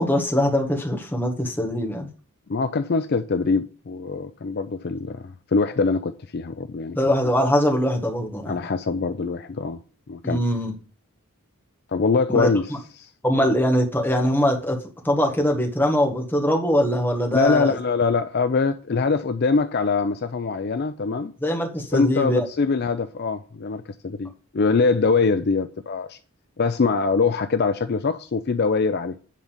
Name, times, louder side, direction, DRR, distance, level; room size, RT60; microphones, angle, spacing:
voice 1, 0.0-2.1 6.9-8.6 10.2-10.7 12.3-12.5 13.2-14.8 15.0-17.8 21.4-22.5, equal, 10° left, 1.6 m, -22 dB
voice 2, 2.5-7.0 7.2-7.3 8.4-9.8 10.1-10.4 11.9-12.7 13.0-13.1 17.3-21.3 21.9-26.2 26.6-29.2, left 4 dB, 45° left, 0.5 m, -23 dB
10.0 x 4.0 x 7.2 m
head